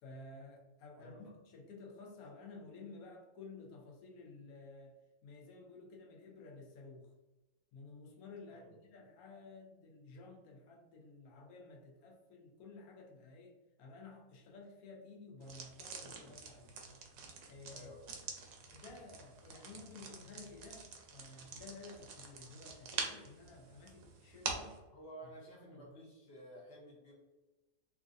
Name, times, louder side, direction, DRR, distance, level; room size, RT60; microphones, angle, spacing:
voice 1, 0.0-5.0 5.2-7.1 7.7-16.7 17.4-17.9 18.7-24.8 25.7-25.9, left 3 dB, 80° left, 0 dB, 1.1 m, -53 dB
voice 2, 1.0-1.3 5.9-6.0 8.5-8.8 17.7-18.0 24.9-27.1, right 1 dB, 50° left, -3 dB, 0.8 m, -53 dB
sound 1, 15.4-24.8, right 4 dB, 75° right, 1.0 m, -46 dB
3.1 x 2.5 x 2.5 m, 1.1 s
omnidirectional pair, 1.6 m